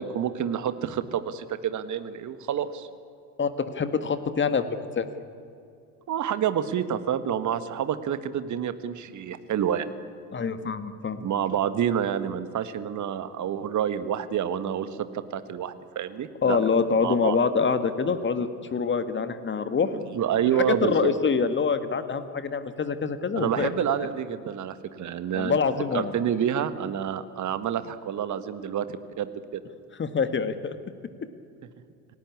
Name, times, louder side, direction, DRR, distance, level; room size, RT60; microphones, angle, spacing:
voice 1, 0.0-2.9 6.1-9.9 11.2-16.6 17.0-17.4 20.1-21.1 23.3-25.6 25.9-29.6, right 9 dB, 35° right, 12 dB, 1.6 m, -28 dB
voice 2, 3.4-5.1 10.3-11.3 16.4-19.9 20.7-23.7 25.3-26.1 30.0-30.7, left 5 dB, 25° left, 10 dB, 1.8 m, -25 dB
29.0 x 18.0 x 8.6 m, 2.4 s
figure-of-eight pair, 65°, 48 cm